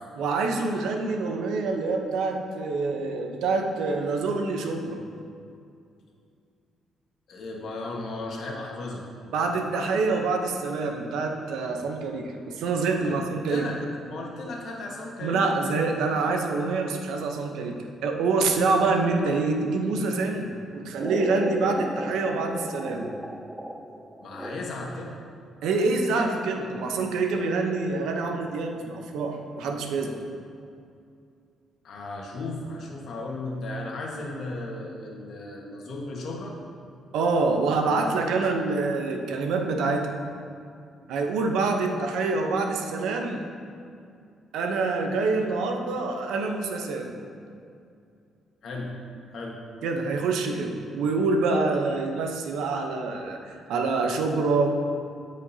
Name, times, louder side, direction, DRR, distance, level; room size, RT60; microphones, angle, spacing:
voice 1, 0.2-5.0 9.3-13.7 15.2-23.1 25.6-30.2 37.1-40.1 41.1-43.4 44.5-47.1 49.8-54.7, right 3 dB, 85° right, 3 dB, 0.8 m, -26 dB
voice 2, 7.3-9.0 11.7-11.8 13.0-13.1 13.5-13.8 14.1-15.4 24.2-25.2 31.8-36.5 48.6-48.9 49.3-49.6, left 2 dB, 65° left, -1 dB, 1.5 m, -35 dB
sound 1, 21.0-25.0, right 1 dB, 10° right, 0.4 m, -35 dB
14.5 x 5.2 x 2.8 m, 2.4 s
cardioid pair, 90°, 0 cm